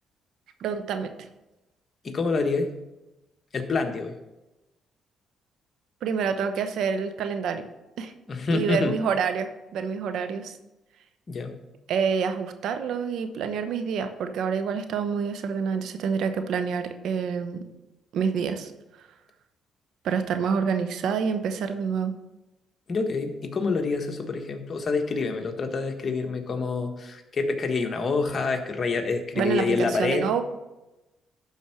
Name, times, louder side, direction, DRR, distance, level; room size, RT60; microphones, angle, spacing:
voice 1, 0.6-1.3 6.0-7.7 8.0-8.1 8.5-10.6 11.9-17.6 18.1-18.7 20.0-22.1 29.4-30.4, right 6 dB, 75° right, 9 dB, 0.9 m, -27 dB
voice 2, 2.0-2.7 3.5-4.2 8.3-9.0 11.3-11.6 22.9-30.3, left 4 dB, 45° left, 4 dB, 1.5 m, -27 dB
11.5 x 4.5 x 5.9 m, 1.0 s
supercardioid pair, 65°, 0 cm